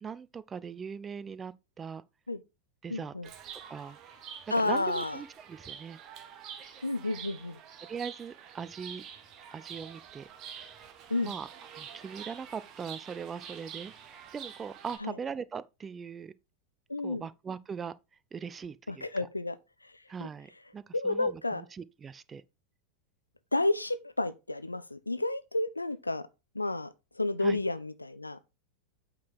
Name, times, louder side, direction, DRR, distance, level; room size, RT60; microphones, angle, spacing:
voice 1, 0.0-2.0 2.8-3.1 3.7-4.0 4.6-6.0 7.9-9.0 9.5-10.7 11.2-11.5 11.8-16.3 17.0-17.9 18.3-19.1 20.1-22.4 27.4-27.6, right 6 dB, 20° right, 0.5 m, -40 dB
voice 2, 2.9-3.3 4.5-5.2 6.8-7.6 11.1-11.3 15.0-15.2 16.9-17.3 18.9-19.6 19.8-20.3 20.9-21.6 23.5-26.3 26.5-26.9 27.1-28.5, left 2 dB, 85° left, 0.6 m, -31 dB
Chirp tweet, 3.2-15.0, right 8 dB, 35° right, 1.2 m, -47 dB
8.5 x 3.8 x 4.6 m
figure-of-eight pair, 90°, 0 cm